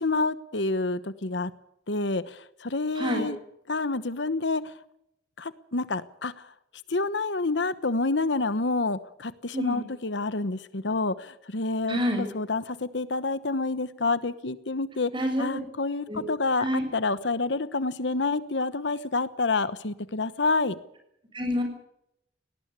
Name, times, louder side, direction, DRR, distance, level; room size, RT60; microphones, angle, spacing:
voice 1, 0.0-1.5 1.9-3.4 3.7-4.6 5.4-6.3 6.9-15.1 15.4-20.8, left 3 dB, 70° left, 15 dB, 1.1 m, -28 dB
voice 2, 3.0-3.3 9.5-9.9 11.9-12.3 15.1-15.6 16.1-16.2 16.6-16.8 21.3-21.6, equal, 25° right, 5 dB, 7.2 m, -27 dB
19.0 x 18.5 x 9.8 m, 0.78 s
head